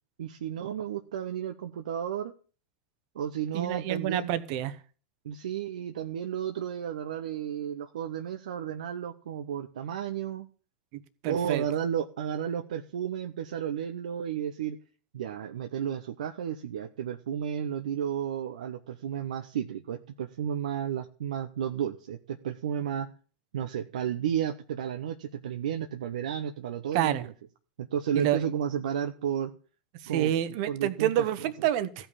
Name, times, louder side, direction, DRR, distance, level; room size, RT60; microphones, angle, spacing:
voice 1, 0.2-2.3 3.1-4.3 5.2-10.5 11.3-14.8 15.1-23.1 23.5-27.3 27.8-29.5 30.1-31.5, right 9 dB, 70° right, 6 dB, 0.9 m, -33 dB
voice 2, 3.5-4.8 10.9-11.6 26.9-27.3 28.1-28.4 30.0-32.1, right 11 dB, 55° right, 12 dB, 1.4 m, -28 dB
15.0 x 5.7 x 8.5 m, 0.39 s
hypercardioid pair, 90°, 4 cm